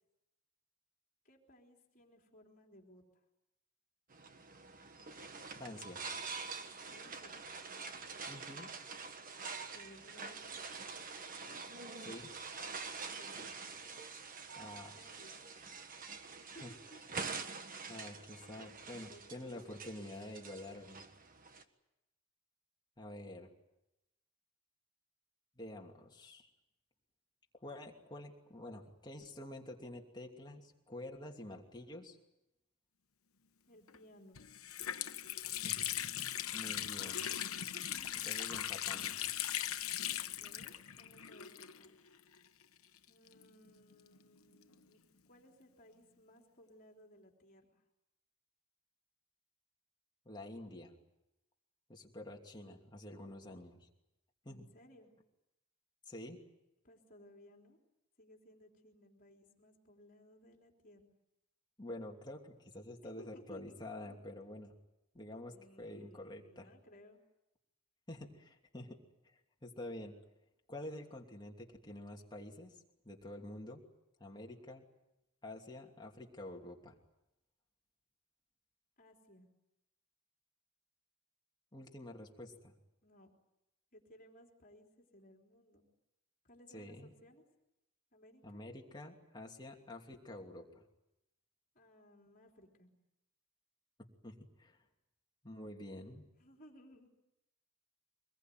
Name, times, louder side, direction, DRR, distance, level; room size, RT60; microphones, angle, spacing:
voice 1, 1.2-3.2 6.9-7.4 9.7-10.8 13.0-13.4 14.6-14.7 14.9-15.5 16.4-17.0 19.1-20.1 33.7-34.4 37.5-38.5 39.8-42.0 43.1-45.0 45.3-47.8 54.4-55.1 56.8-57.8 58.2-61.2 63.0-64.2 65.5-67.2 79.0-79.5 83.0-83.3 83.9-85.9 86.4-87.4 88.1-88.6 91.8-92.9 96.4-97.1, equal, 40° left, 1 dB, 3.8 m, -61 dB
sound 1, 4.1-21.6, right 4 dB, 40° right, 1.5 m, -46 dB
voice 2, 5.5-6.0 8.3-8.7 12.0-12.3 14.6-15.1 16.6-16.7 17.9-21.0 23.0-23.5 25.6-26.5 27.6-32.2 35.6-35.9 36.5-37.2 38.2-39.2 50.2-50.9 51.9-53.9 54.4-54.6 56.0-56.4 61.8-64.7 65.1-66.7 68.1-69.0 69.2-70.1 70.7-72.8 73.0-73.8 74.2-74.8 75.4-76.9 81.7-82.7 86.7-87.1 88.4-90.8 94.2-94.8 95.4-96.3, left 1 dB, 20° left, 1 dB, 2.9 m, -48 dB
Water tap faucet, 33.9-34.0 34.4-42.1 42.3-42.4 43.3-44.8, left 11 dB, 80° left, 1.1 m, -39 dB
24.5 x 21.0 x 9.4 m, 0.90 s
head